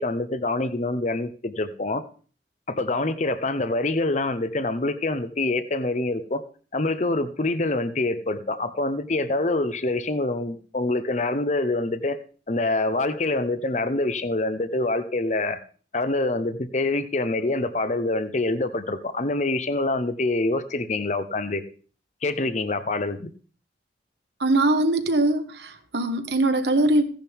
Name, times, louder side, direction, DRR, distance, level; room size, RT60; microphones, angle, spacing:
voice 1, 0.0-2.0 2.7-6.4 6.7-12.2 12.5-15.6 15.9-21.6 22.2-23.3, left 2 dB, 40° left, 11 dB, 0.8 m, -25 dB
voice 2, 24.4-27.0, right 2 dB, 70° right, 8 dB, 1.4 m, -22 dB
16.0 x 10.5 x 3.6 m, 0.41 s
head